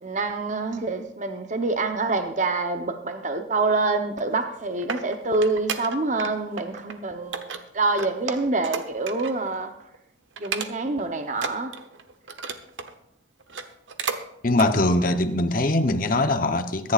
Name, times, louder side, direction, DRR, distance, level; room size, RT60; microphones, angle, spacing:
voice 1, 0.0-9.7 10.4-11.7, right 3 dB, 40° right, 7 dB, 0.9 m, -26 dB
sound 1, 4.3-6.3 6.6-6.9 7.3-9.5 9.8-10.0 10.4-11.0 11.3-12.9 13.4-14.2 14.5-14.7 15.2-15.3, right 5 dB, 85° right, 1.0 m, -33 dB
voice 2, 14.4-16.9, left 2 dB, 50° left, 8 dB, 0.9 m, -22 dB
23.0 x 10.5 x 2.5 m, 0.78 s
head